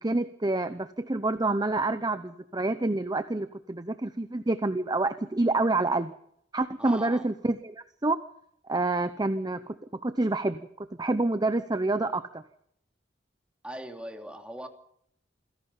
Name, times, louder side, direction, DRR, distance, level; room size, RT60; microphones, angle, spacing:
voice 1, 0.0-6.1 6.5-8.2 8.7-9.7 10.0-12.4, right 2 dB, 20° right, 10 dB, 0.8 m, -28 dB
voice 2, 6.8-7.2 13.6-14.7, right 1 dB, 5° right, 4 dB, 2.8 m, -40 dB
28.0 x 16.5 x 5.7 m, 0.71 s
head